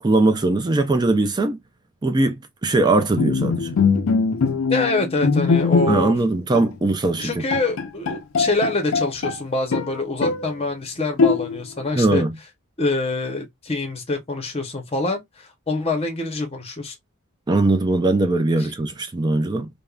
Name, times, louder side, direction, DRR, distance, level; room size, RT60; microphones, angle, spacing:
voice 1, 0.0-1.6 2.0-3.7 5.9-7.4 12.0-12.4 17.5-19.7, right 2 dB, 20° right, 0.4 m, -20 dB
Bowed string instrument, 3.2-6.2 6.5-6.8 7.2-7.3 7.5-9.4 9.7-10.5 11.2-11.8, left 4 dB, 65° left, 0.4 m, -21 dB
voice 2, 4.7-6.1 7.2-12.2 12.8-16.9, left 3 dB, 25° left, 0.7 m, -25 dB
3.4 x 2.1 x 2.3 m
head